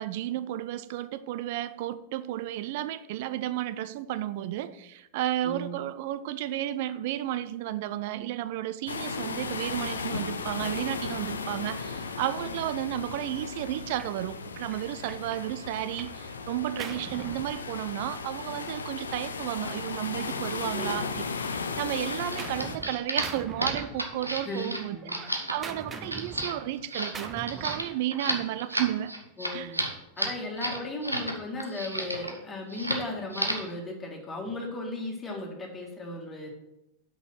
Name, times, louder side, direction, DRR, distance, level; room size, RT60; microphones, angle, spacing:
voice 1, 0.0-21.2 21.8-29.1 29.5-29.8, right 13 dB, 50° right, 0.4 m, -33 dB
voice 2, 5.4-5.8 20.7-21.1 24.4-25.2 29.4-29.9 30.2-36.5, left 2 dB, 20° left, 1.7 m, -36 dB
sound 1, 8.9-22.8, left 4 dB, 70° left, 0.5 m, -36 dB
Gunshot gunfire, 14.0-14.2 14.7-16.2 16.5-18.2 19.2-21.0 21.4-22.9 23.2-24.5 24.8-28.0, right 4 dB, 20° right, 0.7 m, -44 dB
sound 2, 22.2-31.3 31.6-32.4 32.7-33.0 33.3-33.7, right 1 dB, 85° right, 0.9 m, -32 dB
6.3 x 5.3 x 5.9 m
figure-of-eight pair, 90°, 0 cm